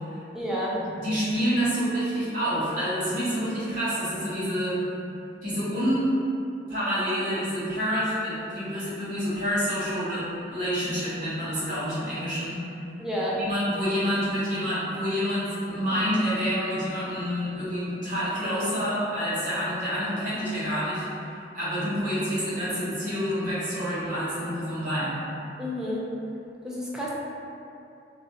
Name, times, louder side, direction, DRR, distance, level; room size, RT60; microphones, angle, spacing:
voice 1, 0.3-0.8 13.0-13.4 25.6-26.0 26.6-27.1, equal, 5° right, -6 dB, 0.3 m, -30 dB
voice 2, 1.0-4.8 5.4-6.1 6.7-12.6 13.4-25.2, equal, 50° right, -12 dB, 0.9 m, -28 dB
2.4 x 2.0 x 2.7 m, 2.7 s
head